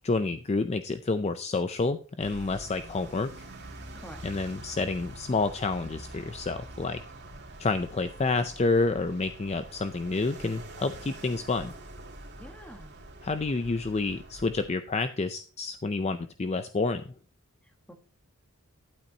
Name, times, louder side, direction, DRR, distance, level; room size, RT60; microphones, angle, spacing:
voice 1, 0.0-3.5 4.2-7.0 7.6-11.7 13.2-17.0, left 3 dB, 30° left, 10 dB, 0.4 m, -29 dB
sound 1, 2.2-14.7, right 1 dB, 50° right, 2.6 m, -45 dB
voice 2, 3.9-4.2 12.4-12.9 17.6-17.9, equal, 5° left, 5 dB, 1.3 m, -47 dB
12.0 x 8.5 x 2.8 m, 0.40 s
head